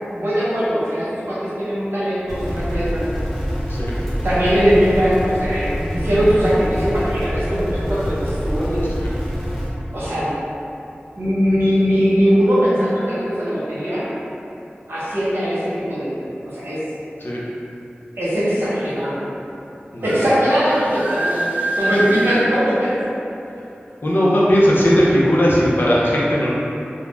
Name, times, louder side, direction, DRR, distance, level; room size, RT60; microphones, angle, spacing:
voice 1, 0.1-3.1 3.9-8.8 9.9-10.3 11.2-14.1 14.9-16.8 18.2-19.2 20.0-22.9, equal, 90° right, -10 dB, 0.8 m, -20 dB
sound 1, 2.3-9.7, equal, 5° left, 0.6 m, -25 dB
voice 2, 19.9-20.2 24.0-26.6, equal, 60° left, -6 dB, 0.5 m, -17 dB
sound 2, 20.0-20.2 20.7-22.5, right 2 dB, 40° right, 0.3 m, -24 dB
2.4 x 2.1 x 3.2 m, 2.8 s
wide cardioid pair, 60°, 4 cm